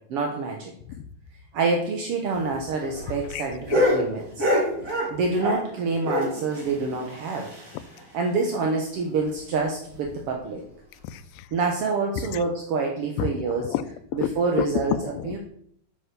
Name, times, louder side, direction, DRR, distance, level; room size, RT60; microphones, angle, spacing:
voice 1, 0.1-0.7 1.5-4.5 5.1-7.5 8.1-10.6 11.5-13.6 14.1-15.4, right 4 dB, 65° right, 2 dB, 1.5 m, -27 dB
sound 1, 2.3-5.7 6.0-8.0 8.3-8.4 8.7-8.8 9.2-9.3 9.9-10.2 11.0-11.1, left 1 dB, 25° right, 3.4 m, -27 dB
voice 2, 11.0-11.5 12.2-12.4 13.2-14.3 14.6-15.4, left 11 dB, 85° left, 13 dB, 2.4 m, -30 dB
8.1 x 7.7 x 6.8 m, 0.69 s
omnidirectional pair, 4.1 m